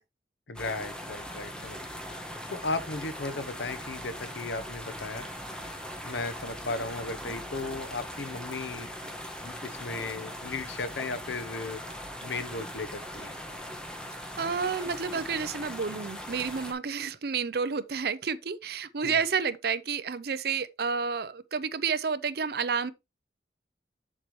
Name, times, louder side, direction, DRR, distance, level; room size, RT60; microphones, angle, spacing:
voice 1, 0.5-1.8 2.5-5.3 6.0-8.9 9.4-11.8 12.2-13.3 19.0-19.2, left 3 dB, 80° left, 0.9 m, -35 dB
sound 1, 0.5-16.7, equal, 5° left, 1.2 m, -40 dB
voice 2, 14.4-22.9, right 5 dB, 60° right, 0.6 m, -30 dB
7.3 x 6.8 x 3.1 m
head